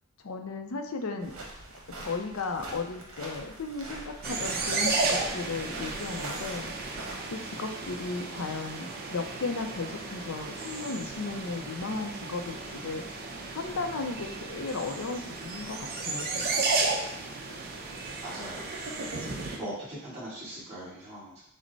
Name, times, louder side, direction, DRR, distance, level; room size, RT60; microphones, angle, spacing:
voice 1, 0.2-1.3 2.0-6.7 7.2-13.0 13.5-16.7, left 3 dB, 75° left, 5 dB, 0.5 m, -35 dB
sound 1, 1.2-7.2, right 2 dB, 75° right, 1.1 m, -43 dB
sound 2, 4.2-19.6, right 3 dB, 45° right, 0.7 m, -34 dB
voice 2, 18.2-18.7 19.5-21.3, right 1 dB, 30° right, -13 dB, 1.8 m, -40 dB
6.2 x 2.1 x 4.0 m, 0.80 s
head